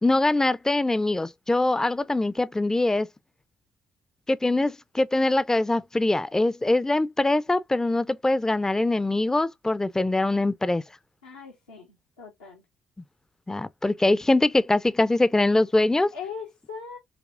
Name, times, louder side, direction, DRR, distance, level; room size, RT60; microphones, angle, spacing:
voice 1, 0.0-3.1 4.3-10.8 13.5-16.1, left 2 dB, 10° left, 0.4 m, -23 dB
voice 2, 11.2-12.6 16.1-17.0, left 6 dB, 85° left, 0.8 m, -40 dB
6.0 x 2.9 x 2.5 m
figure-of-eight pair, 45°, 4 cm